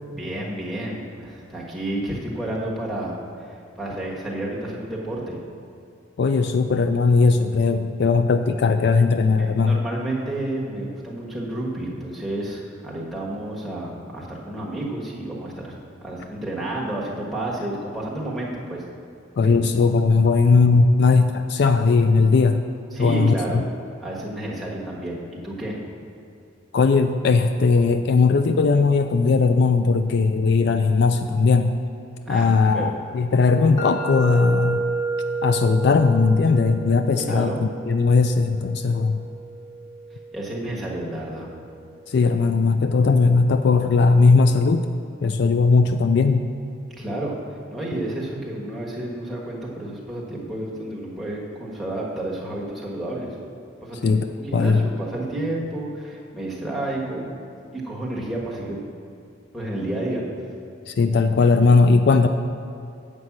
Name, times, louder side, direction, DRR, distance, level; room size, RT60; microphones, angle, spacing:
voice 1, 0.1-3.2 3.8-5.4 9.4-15.7 16.0-18.8 22.9-23.6 24.0-25.8 32.2-32.5 32.7-32.9 37.3-37.6 40.3-41.5 47.0-47.4 47.7-53.3 53.8-57.4 57.7-58.8 59.5-60.2, right 1 dB, ahead, -6 dB, 1.4 m, -30 dB
voice 2, 6.2-9.8 19.4-22.6 23.0-23.6 26.7-31.8 32.3-34.8 35.4-39.2 42.1-44.9 45.2-46.5 54.0-54.3 54.5-54.9 60.9-62.3, left 4 dB, 55° left, 8 dB, 0.3 m, -18 dB
sound 1, 33.8-41.6, right 3 dB, 20° left, 1.0 m, -31 dB
8.0 x 5.3 x 7.3 m, 2.5 s
head